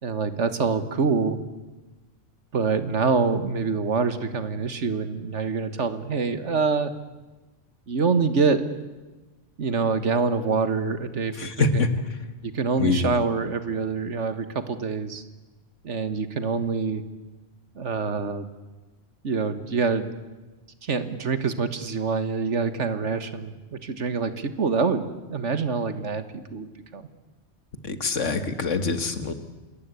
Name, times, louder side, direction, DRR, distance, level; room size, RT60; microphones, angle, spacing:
voice 1, 0.0-1.4 2.5-6.9 7.9-8.6 9.6-11.9 12.4-15.2 15.8-17.0 17.8-18.5 19.2-20.1 20.8-27.1, right 5 dB, 75° right, 11 dB, 1.9 m, -26 dB
voice 2, 11.4-11.9 12.8-13.2 27.8-29.3, left 4 dB, 80° left, 9 dB, 2.2 m, -25 dB
27.0 x 21.0 x 8.4 m, 1.2 s
omnidirectional pair, 1.2 m